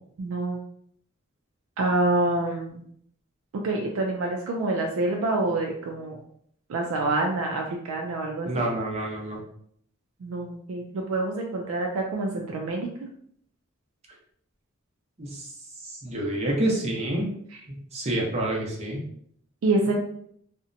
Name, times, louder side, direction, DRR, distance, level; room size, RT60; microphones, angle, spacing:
voice 1, 0.2-0.6 1.8-2.9 3.5-6.2 6.7-8.6 10.2-13.1 19.6-20.0, right 2 dB, 90° right, 1 dB, 0.4 m, -27 dB
voice 2, 8.5-9.4 15.2-15.5 15.8-17.3 17.7-19.0, right 1 dB, 30° right, -2 dB, 0.6 m, -28 dB
2.6 x 2.1 x 2.5 m, 0.66 s
head